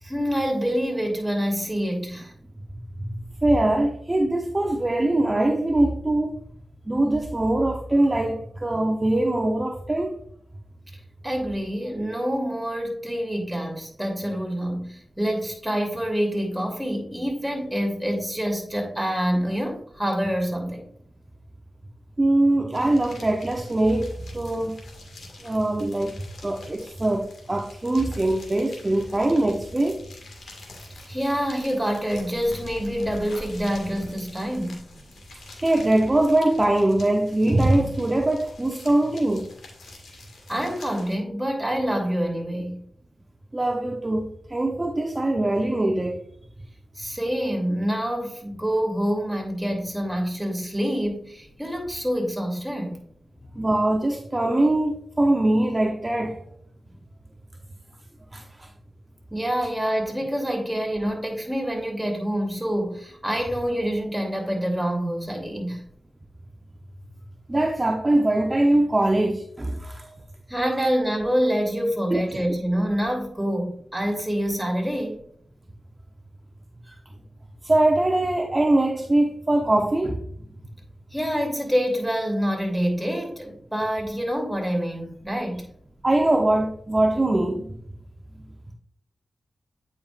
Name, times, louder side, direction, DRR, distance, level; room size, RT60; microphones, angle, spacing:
voice 1, 0.0-2.3 11.2-20.8 31.1-34.9 40.5-42.8 46.9-53.0 53.5-53.6 59.3-65.8 70.5-75.2 76.9-77.0 81.1-85.7, equal, 5° right, 2.9 m, -26 dB
voice 2, 3.4-6.4 6.9-10.2 22.2-24.8 25.4-30.0 35.6-39.5 43.5-46.2 53.6-56.4 58.3-58.7 67.5-70.1 72.1-72.4 77.6-80.2 86.0-87.8, right 1 dB, 30° right, 0.8 m, -22 dB
sound 1, 22.7-41.1, left 1 dB, 80° left, 1.8 m, -45 dB
8.5 x 5.3 x 2.5 m
cardioid pair, 45°, 0 cm